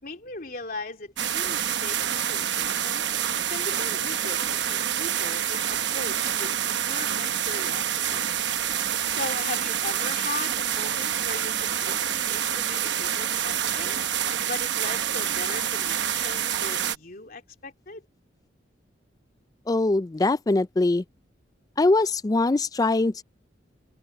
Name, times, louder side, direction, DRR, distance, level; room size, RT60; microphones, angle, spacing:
voice 1, 0.0-3.0 3.5-8.2 9.1-14.0 14.4-18.0, left 3 dB, 50° left, 3.2 m, -38 dB
sound 1, 1.2-17.0, right 10 dB, 65° right, 1.0 m, -27 dB
voice 2, 19.7-21.0 21.8-23.2, left 2 dB, 20° left, 0.3 m, -22 dB
head